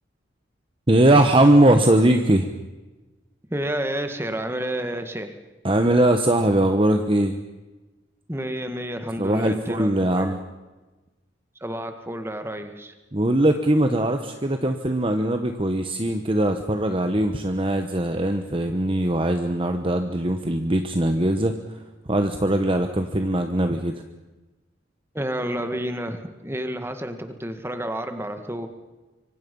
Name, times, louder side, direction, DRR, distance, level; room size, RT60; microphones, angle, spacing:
voice 1, 0.9-2.5 5.6-7.4 9.2-10.4 13.1-21.5 22.1-23.9, right 1 dB, 30° right, 6 dB, 1.2 m, -20 dB
voice 2, 3.5-5.4 8.3-10.4 11.6-12.9 25.1-28.7, right 1 dB, 15° right, 7 dB, 1.9 m, -30 dB
25.5 x 24.5 x 5.5 m, 1.2 s
head